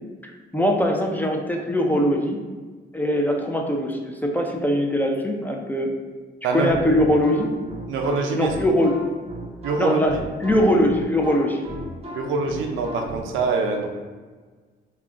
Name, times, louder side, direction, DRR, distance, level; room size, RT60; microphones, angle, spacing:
voice 1, 0.5-2.4 2.9-5.9 6.5-7.5 8.3-9.0 9.8-10.1 10.4-11.6, equal, 10° left, 1 dB, 0.3 m, -21 dB
sound 1, 6.7-13.2, equal, 35° right, 0.6 m, -35 dB
voice 2, 7.9-8.5 9.6-10.2 12.1-13.9, right 4 dB, 90° right, 3 dB, 0.5 m, -24 dB
2.4 x 2.1 x 3.6 m, 1.4 s
cardioid pair, 90°, 20 cm